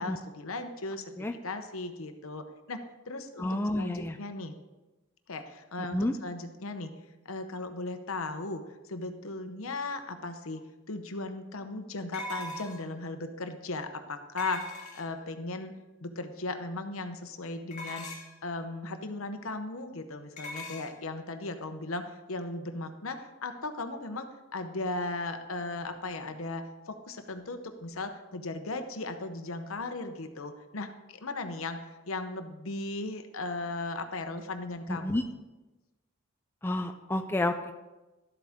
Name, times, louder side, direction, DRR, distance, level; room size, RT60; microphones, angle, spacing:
voice 1, 0.0-1.2 1.4-2.8 3.1-4.5 5.3-6.9 7.2-8.6 8.9-10.6 10.9-15.7 16.0-18.1 18.4-35.2, left 2 dB, 75° left, 8 dB, 0.9 m, -37 dB
voice 2, 3.4-4.2 5.9-6.2 34.9-35.2 36.6-37.7, left 1 dB, 10° left, 5 dB, 0.4 m, -30 dB
sound 1, 10.6-10.7 12.1-13.0 14.4-15.3 17.7-18.4 20.4-20.9, left 1 dB, 35° left, 1.8 m, -40 dB
12.5 x 8.0 x 3.6 m, 1.1 s
head